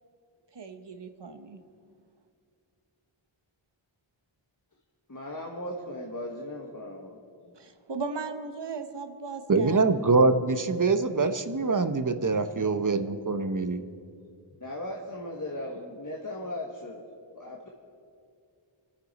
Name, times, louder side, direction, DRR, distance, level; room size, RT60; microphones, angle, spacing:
voice 1, 0.5-1.6 7.6-9.8, right 4 dB, 55° right, 7 dB, 1.1 m, -37 dB
voice 2, 5.1-7.5 14.6-17.0 17.3-17.7, left 1 dB, 40° left, -2 dB, 1.4 m, -38 dB
voice 3, 9.5-13.8, right 3 dB, 40° right, 9 dB, 0.9 m, -24 dB
28.0 x 9.7 x 4.1 m, 2.3 s
wide cardioid pair, 65°, 49 cm